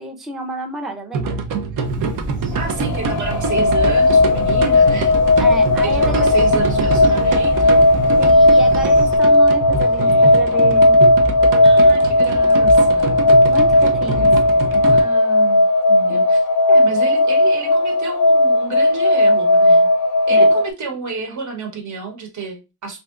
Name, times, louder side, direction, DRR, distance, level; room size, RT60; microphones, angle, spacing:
voice 1, 0.0-1.4 5.4-6.3 8.2-11.0 13.4-14.3 16.1-16.2 20.3-20.5, equal, ahead, 2 dB, 0.4 m, -30 dB
sound 1, 1.1-15.0, right 4 dB, 90° right, 0.6 m, -25 dB
sound 2, 1.8-9.2, left 1 dB, 40° right, 0.7 m, -30 dB
sound 3, 2.5-20.7, left 1 dB, 70° left, 0.5 m, -15 dB
voice 2, 2.5-5.1 5.8-7.8 11.6-13.2 14.2-14.4 14.9-19.9 20.3-23.0, right 4 dB, 65° right, 2 dB, 1.1 m, -30 dB
3.3 x 2.7 x 2.4 m, 0.28 s
wide cardioid pair, 145°, 31 cm